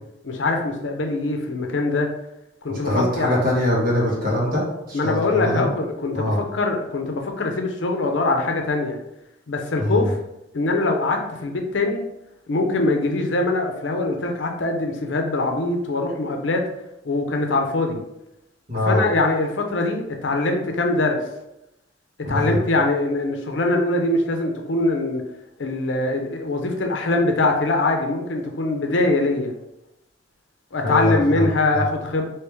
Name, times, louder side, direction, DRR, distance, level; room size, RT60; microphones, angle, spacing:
voice 1, 0.2-2.1 2.6-2.9 3.2-3.3 4.9-9.0 9.5-10.2 10.5-12.0 12.5-16.6 17.0-18.0 18.9-21.2 22.3-25.2 25.6-29.5 30.7-32.3, left 2 dB, 75° left, 3 dB, 0.6 m, -23 dB
voice 2, 2.7-5.7 6.1-6.4 9.8-10.1 18.7-19.0 22.2-22.6 30.8-31.5 31.7-31.8, left 1 dB, 50° right, -5 dB, 1.4 m, -22 dB
3.1 x 3.0 x 3.4 m, 0.86 s
head